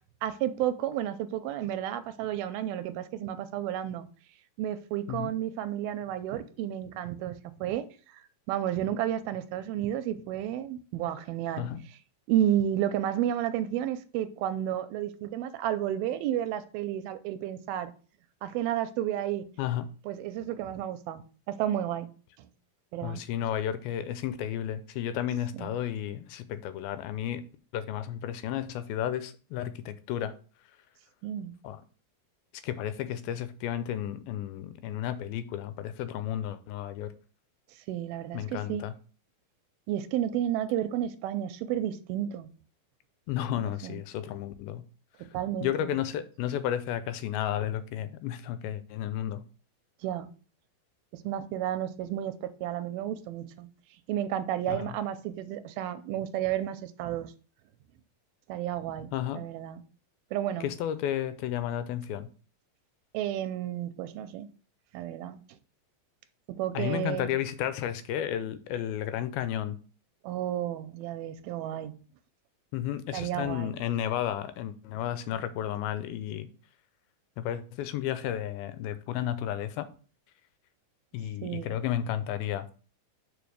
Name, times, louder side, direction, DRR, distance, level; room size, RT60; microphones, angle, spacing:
voice 1, 0.2-4.1 4.6-7.8 8.5-11.7 12.3-17.9 18.4-19.5 20.1-22.1 22.4-22.5 22.9-23.2 25.6-25.7 31.2-31.5 37.9-38.8 39.9-42.5 43.6-44.0 45.3-45.9 50.0-50.3 51.1-53.7 54.1-57.3 58.5-59.8 60.3-60.7 63.1-64.5 64.9-65.4 66.6-67.3 70.2-71.9 73.1-73.8 81.4-81.7, right 11 dB, 90° right, 2.5 m, -32 dB
voice 2, 23.0-27.5 27.7-30.3 31.6-31.8 32.6-37.1 38.3-38.9 43.3-44.9 45.6-49.4 54.7-55.0 59.1-59.4 60.6-62.3 66.7-69.8 72.7-76.5 77.4-79.9 81.1-82.8, left 11 dB, 90° left, 2.5 m, -32 dB
5.2 x 5.1 x 6.2 m
omnidirectional pair, 4.3 m